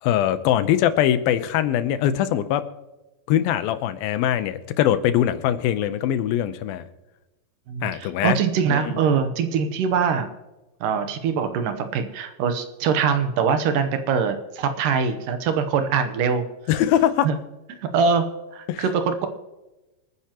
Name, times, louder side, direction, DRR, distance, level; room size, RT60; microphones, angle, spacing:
voice 1, 0.0-2.6 3.3-6.9 7.8-8.4 8.7-9.0 16.7-17.3 18.7-18.8, left 11 dB, 90° left, 11 dB, 2.6 m, -22 dB
voice 2, 7.7-10.3 10.8-16.5 17.2-17.4 17.8-18.2 18.5-19.3, right 6 dB, 75° right, 8 dB, 2.4 m, -23 dB
26.5 x 9.5 x 2.9 m, 1.0 s
omnidirectional pair, 4.1 m